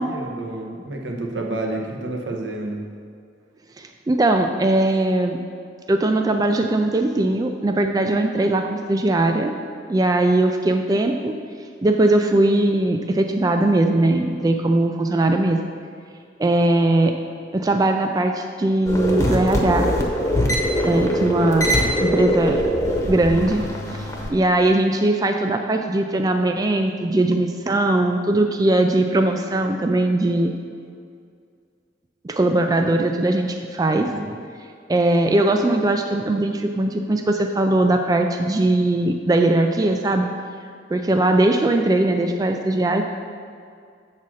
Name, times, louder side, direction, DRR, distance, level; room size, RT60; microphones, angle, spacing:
voice 1, 0.0-2.8 34.0-34.3, right 2 dB, 85° right, 0 dB, 1.0 m, -30 dB
voice 2, 3.8-5.4 5.9-9.5 9.9-11.3 11.8-15.6 16.4-17.1 17.5-19.9 20.8-21.7 22.0-22.6 23.1-23.6 23.9-24.0 24.3-30.5 32.2-34.1 34.9-40.3 40.9-43.0, right 2 dB, 20° right, 4 dB, 0.3 m, -20 dB
sound 1, 18.9-24.3, equal, 20° left, 0.9 m, -22 dB
7.4 x 4.1 x 6.2 m, 2.2 s
head